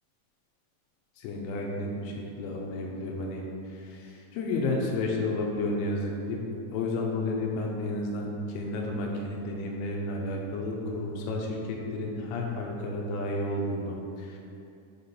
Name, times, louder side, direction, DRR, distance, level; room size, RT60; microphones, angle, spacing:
voice 1, 1.2-6.4 6.7-8.3 8.5-14.4, left 2 dB, 80° left, -1 dB, 2.5 m, -32 dB
6.8 x 3.9 x 4.2 m, 2.6 s
omnidirectional pair, 4.8 m